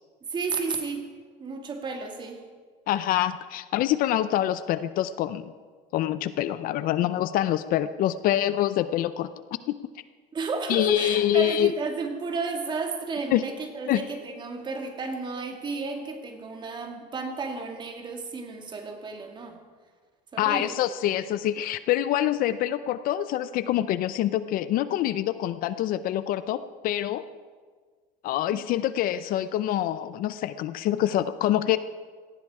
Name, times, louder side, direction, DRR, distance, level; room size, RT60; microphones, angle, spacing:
voice 1, 0.3-1.1 1.4-2.4 10.3-19.6 20.3-20.8 28.5-28.6, right 4 dB, 25° right, 4 dB, 2.2 m, -32 dB
voice 2, 2.9-5.5 5.9-9.3 10.7-11.7 13.3-13.4 13.9-14.0 20.4-27.3 28.2-31.8, left 12 dB, 50° left, 14 dB, 0.6 m, -25 dB
18.0 x 15.0 x 4.8 m, 1.5 s
cardioid pair, 150°, 18 cm